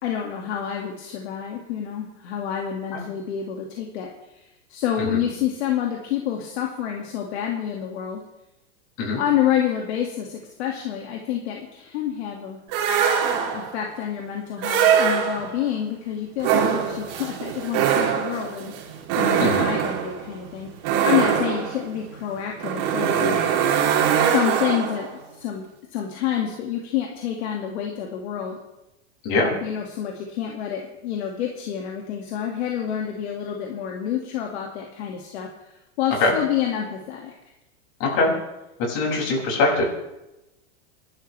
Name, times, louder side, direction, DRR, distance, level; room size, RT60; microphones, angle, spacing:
voice 1, 0.0-8.2 9.2-12.6 13.5-18.7 19.2-20.7 21.0-23.4 24.2-25.1 25.4-25.6 25.9-28.6 29.6-37.3, left 10 dB, 70° left, 0 dB, 2.3 m, -28 dB
sound 1, 12.7-13.8 14.6-15.6 16.4-25.1, right 8 dB, 45° right, 3.2 m, -22 dB
voice 2, 38.0-38.3 38.8-39.8, left 3 dB, 45° left, -1 dB, 6.7 m, -22 dB
27.5 x 12.0 x 3.4 m, 0.94 s
supercardioid pair, 145°, 35 cm